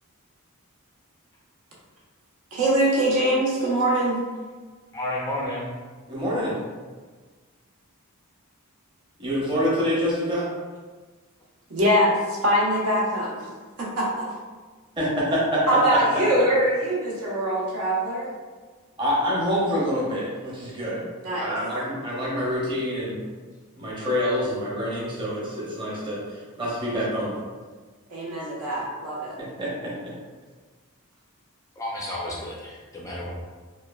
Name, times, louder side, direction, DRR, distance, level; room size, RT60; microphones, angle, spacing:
voice 1, 2.5-4.2 11.7-13.4 13.8-14.3 15.7-18.3 21.2-21.6 28.1-29.4, right 1 dB, 75° right, -4 dB, 0.7 m, -23 dB
voice 2, 4.9-5.7 31.8-33.3, left 1 dB, 15° left, -4 dB, 0.3 m, -31 dB
voice 3, 6.1-6.6 9.2-10.5 15.0-15.8 19.0-21.1 21.4-23.2 23.8-27.4 29.4-29.9, equal, 20° right, -7 dB, 0.8 m, -26 dB
3.0 x 2.2 x 2.2 m, 1.4 s
head